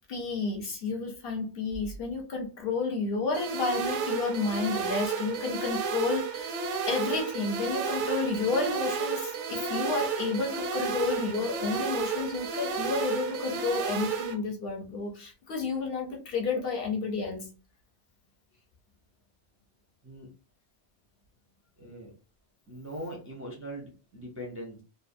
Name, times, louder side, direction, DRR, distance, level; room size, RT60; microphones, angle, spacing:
voice 1, 0.1-6.6 6.9-17.5, left 4 dB, 60° left, 1 dB, 0.8 m, -31 dB
sound 1, 3.3-14.3, right 5 dB, 85° right, 0.9 m, -32 dB
voice 2, 21.8-22.1 22.7-24.8, equal, 20° right, -2 dB, 0.4 m, -41 dB
2.5 x 2.2 x 2.6 m, 0.34 s
omnidirectional pair, 1.2 m